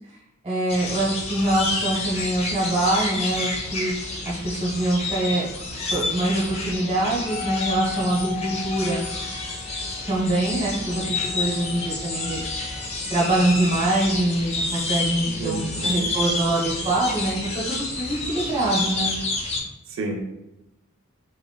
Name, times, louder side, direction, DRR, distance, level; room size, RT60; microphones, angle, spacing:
voice 1, 0.4-3.9 4.2-5.4 5.9-9.0 10.1-17.4 17.7-19.1, right 1 dB, 30° right, -5 dB, 0.8 m, -24 dB
sound 1, 0.7-19.6, left 2 dB, 30° left, 0.3 m, -29 dB
Wind instrument woodwind instrument, 7.1-12.9, left 10 dB, 85° left, 0.7 m, -38 dB
voice 2, 15.3-16.1 19.9-20.2, right 2 dB, 60° right, 3 dB, 0.3 m, -31 dB
2.9 x 2.1 x 2.2 m, 0.91 s
head